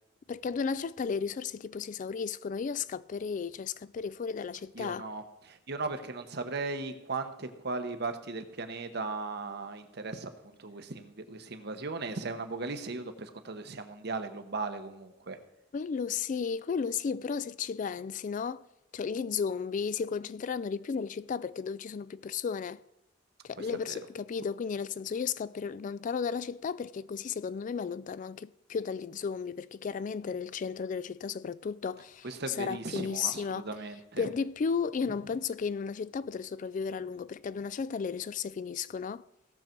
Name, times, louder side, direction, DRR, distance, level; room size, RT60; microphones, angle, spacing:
voice 1, 0.3-5.1 15.7-18.6 18.9-22.8 23.4-33.7 34.2-39.2, left 6 dB, 40° left, 0.3 m, -34 dB
voice 2, 4.7-15.4 23.6-24.0 32.2-34.3, right 3 dB, 60° right, 1.1 m, -37 dB
17.0 x 6.7 x 4.5 m
head